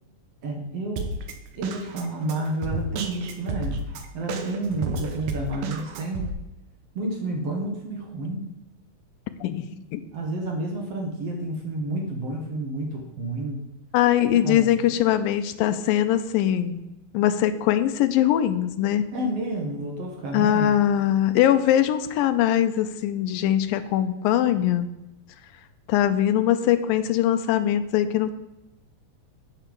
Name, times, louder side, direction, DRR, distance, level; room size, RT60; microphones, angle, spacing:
voice 1, 0.4-1.1 1.5-3.7 4.1-6.3 7.0-8.5 10.1-13.6 14.3-14.7 19.1-20.7, right 1 dB, 55° right, 1 dB, 2.1 m, -30 dB
Drum kit, 1.0-6.3, right 4 dB, 75° right, 2.6 m, -32 dB
voice 2, 13.9-16.8 17.1-19.0 20.3-24.9 25.9-28.3, left 11 dB, 85° left, 11 dB, 2.4 m, -21 dB
8.9 x 5.7 x 7.5 m, 0.95 s
omnidirectional pair, 4.0 m